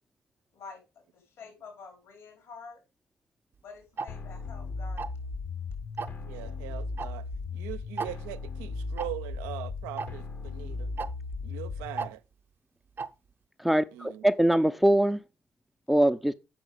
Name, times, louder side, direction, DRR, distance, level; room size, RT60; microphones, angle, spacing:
voice 1, 1.1-2.8 3.6-5.3, left 4 dB, 70° left, 4.6 m, -48 dB
Tick-tock, 4.0-4.1 5.0-5.3 6.0-6.2 7.0-7.1 7.4-7.5 8.0-8.1 9.0-9.1 10.0-10.1 11.0-11.1 12.0-12.1 13.0-13.1, right 5 dB, 45° right, 0.8 m, -33 dB
sound 1, 4.1-12.1, left 4 dB, 55° left, 1.5 m, -37 dB
voice 2, 6.2-10.9 11.4-12.2 13.9-14.3, right 15 dB, 75° right, 0.5 m, -41 dB
voice 3, 13.6-15.2 15.9-16.3, right 1 dB, ahead, 0.6 m, -23 dB
8.5 x 6.2 x 5.1 m
hypercardioid pair, 45°, 5 cm